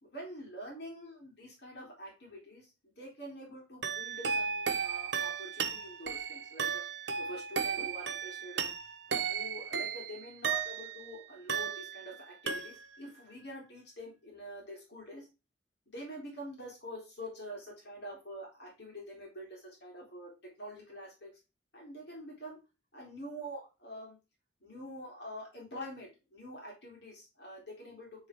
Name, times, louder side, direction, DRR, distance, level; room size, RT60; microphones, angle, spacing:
voice 1, 0.0-2.7 3.0-6.8 7.1-8.7 9.1-15.3 15.9-20.3 20.6-21.3 21.7-22.6 22.9-24.2 24.6-28.3, equal, 60° left, -2 dB, 3.3 m, -46 dB
sound 1, 3.8-11.1 11.5-12.2 12.5-13.1, right 6 dB, 65° right, 1.0 m, -35 dB
9.7 x 4.1 x 3.6 m, 0.27 s
head